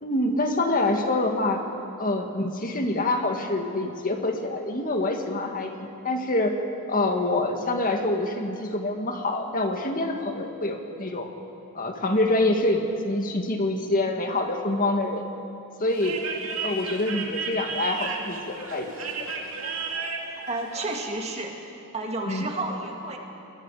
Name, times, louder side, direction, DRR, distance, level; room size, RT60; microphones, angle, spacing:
voice 1, 0.0-1.6 2.0-6.5 6.9-11.3 11.8-15.3 15.8-16.2 16.6-18.9 22.3-22.5, left 2 dB, 40° left, 4 dB, 1.8 m, -26 dB
sound 1, 15.9-21.0, right 4 dB, 75° right, 2.5 m, -33 dB
voice 2, 20.3-21.5 21.9-23.2, right 2 dB, 30° right, 1 dB, 2.2 m, -31 dB
27.0 x 21.0 x 4.9 m, 2.8 s
head